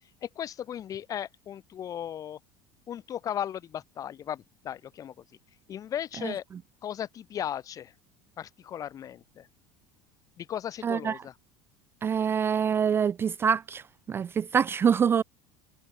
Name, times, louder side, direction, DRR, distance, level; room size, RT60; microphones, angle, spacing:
voice 1, 0.2-2.4 2.9-5.2 5.7-6.4 6.8-7.9 8.4-9.5 10.4-11.3, left 10 dB, 40° left, 6.5 m, -36 dB
voice 2, 10.8-11.1 12.0-13.8 14.1-15.2, right 7 dB, 25° right, 0.4 m, -25 dB
supercardioid pair, 125°, 9 cm